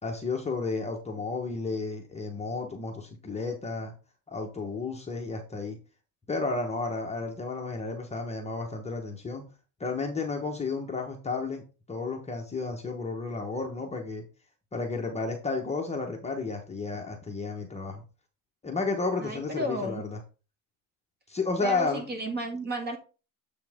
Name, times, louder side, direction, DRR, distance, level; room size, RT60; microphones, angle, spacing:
voice 1, 0.0-3.9 4.3-5.8 6.3-9.4 9.8-11.6 11.9-14.2 14.7-18.0 18.6-20.2 21.3-22.0, left 3 dB, 15° left, 1 dB, 1.2 m, -32 dB
voice 2, 19.2-20.0 21.6-23.0, right 1 dB, 25° right, 4 dB, 1.9 m, -33 dB
7.8 x 5.8 x 3.6 m, 0.34 s
cardioid pair, 130°, 41 cm